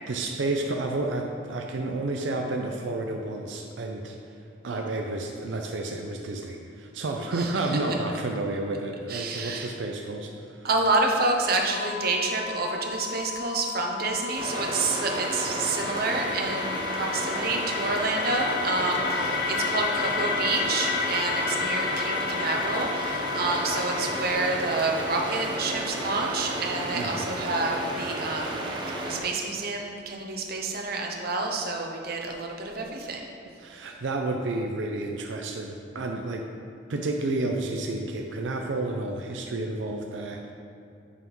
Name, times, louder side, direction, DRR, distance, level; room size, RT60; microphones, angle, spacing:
voice 1, 0.1-4.2 4.6-10.7 26.9-27.3 33.6-36.5 36.9-40.5, right 2 dB, 90° right, 2 dB, 0.5 m, -31 dB
voice 2, 9.1-9.7 10.6-33.2, right 3 dB, 55° right, 1 dB, 0.8 m, -28 dB
sound 1, 11.7-24.3, left 8 dB, 30° left, 1.3 m, -37 dB
sound 2, 14.4-29.2, right 1 dB, 25° right, 0.9 m, -33 dB
sound 3, 14.9-26.8, left 5 dB, 60° left, 0.5 m, -33 dB
8.5 x 3.6 x 5.4 m, 2.5 s
head